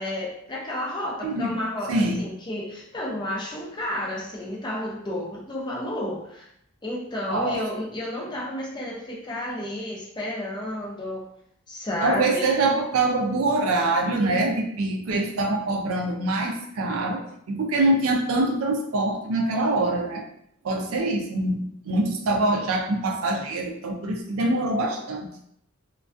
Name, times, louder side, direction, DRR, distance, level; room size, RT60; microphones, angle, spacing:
voice 1, 0.0-6.5 6.8-11.3 11.7-12.5, left 1 dB, 20° left, -3 dB, 0.6 m, -31 dB
voice 2, 1.2-1.6 1.9-2.2 7.3-7.6 12.0-20.2 20.6-25.3, right 2 dB, 75° right, 3 dB, 0.4 m, -24 dB
2.2 x 2.2 x 2.5 m, 0.70 s
head